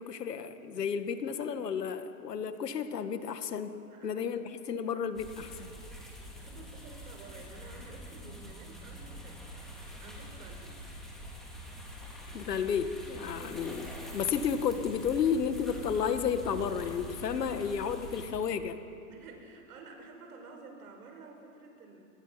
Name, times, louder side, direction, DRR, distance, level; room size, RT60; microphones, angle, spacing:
voice 1, 0.0-3.8 4.0-5.7 12.3-18.8, left 7 dB, 80° left, 9 dB, 1.9 m, -32 dB
voice 2, 3.8-4.2 4.7-5.0 6.1-9.5 9.8-10.7 13.3-13.6 17.5-18.2 19.1-22.0, right 3 dB, 65° right, 3 dB, 5.4 m, -51 dB
sound 1, 5.1-18.3, equal, ahead, 4.2 m, -45 dB
26.5 x 19.0 x 5.9 m, 2.7 s
hypercardioid pair, 135°, 47 cm